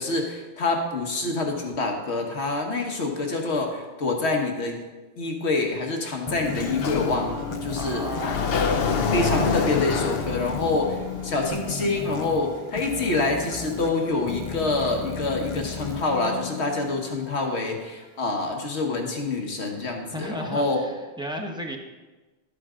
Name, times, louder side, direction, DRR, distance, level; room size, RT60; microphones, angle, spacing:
voice 1, 0.0-4.8 5.2-8.0 9.1-20.8, left 3 dB, 85° left, 2 dB, 1.6 m, -26 dB
sound 1, 6.3-17.4, left 4 dB, 30° left, 0.7 m, -35 dB
Sliding door, 6.5-11.5, left 5 dB, 65° left, 1.0 m, -27 dB
voice 2, 7.7-8.6 20.1-21.8, equal, 5° right, 1 dB, 1.0 m, -34 dB
12.0 x 8.6 x 3.7 m, 1.2 s
omnidirectional pair, 1.1 m